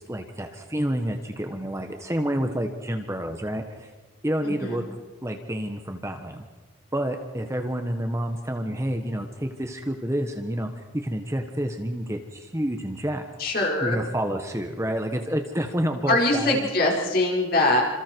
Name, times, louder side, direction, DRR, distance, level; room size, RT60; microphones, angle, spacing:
voice 1, 0.0-3.9 4.2-4.8 5.2-6.4 6.9-13.2 13.8-16.6, equal, 15° right, 5 dB, 1.4 m, -29 dB
voice 2, 4.4-4.8 13.4-14.0 16.1-17.8, left 2 dB, 45° left, -1 dB, 5.2 m, -22 dB
28.0 x 27.0 x 4.7 m, 1.3 s
head